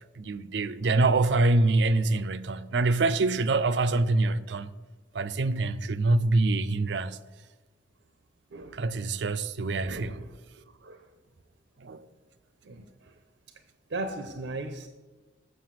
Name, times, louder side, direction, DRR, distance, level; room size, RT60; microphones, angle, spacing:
voice 1, 0.1-4.7 5.1-7.2 8.7-10.2 11.8-12.1, right 2 dB, 70° right, 0.5 m, -25 dB
voice 2, 8.5-8.8 9.9-10.3 10.8-11.0 12.6-13.1 13.9-14.9, right 2 dB, 90° right, 0.8 m, -37 dB
7.5 x 6.8 x 7.6 m
head